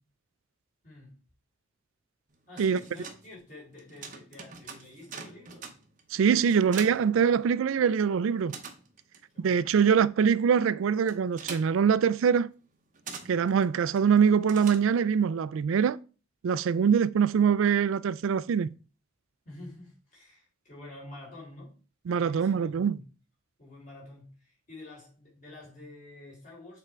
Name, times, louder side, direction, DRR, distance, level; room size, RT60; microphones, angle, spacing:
voice 1, 0.8-1.2 2.5-5.7 9.3-9.7 19.5-21.8 22.1-23.1 23.6-26.8, left 2 dB, 40° left, 3.9 m, -48 dB
sound 1, 2.3-7.9 8.2-15.3, right 5 dB, 40° right, 0.8 m, -45 dB
voice 2, 6.1-8.6 9.4-12.5 13.3-16.0 16.4-18.7 22.1-23.0, right 7 dB, 75° right, 0.3 m, -24 dB
6.7 x 3.6 x 4.5 m
head